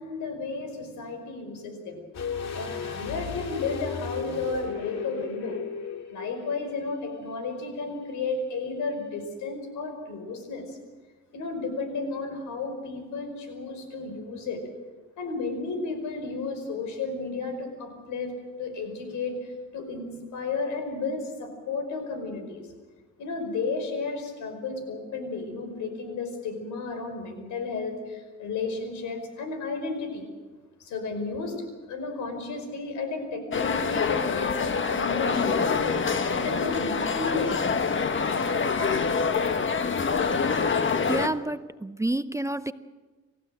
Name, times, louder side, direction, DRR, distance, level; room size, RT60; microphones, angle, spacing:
voice 1, 0.0-2.0 2.5-5.6 6.1-10.8 11.3-14.6 15.2-18.3 18.6-22.7 23.2-30.2 30.8-31.6 31.9-37.6, left 4 dB, 80° left, 7 dB, 5.4 m, -33 dB
sound 1, 2.1-7.0 7.3-7.4, left 6 dB, 60° left, 2.2 m, -35 dB
sound 2, 33.5-41.3, left 5 dB, 40° left, 1.5 m, -26 dB
voice 2, 41.1-42.7, right 1 dB, 10° right, 12 dB, 0.6 m, -29 dB
28.0 x 15.0 x 7.8 m, 1.3 s
cardioid pair, 90°, 30 cm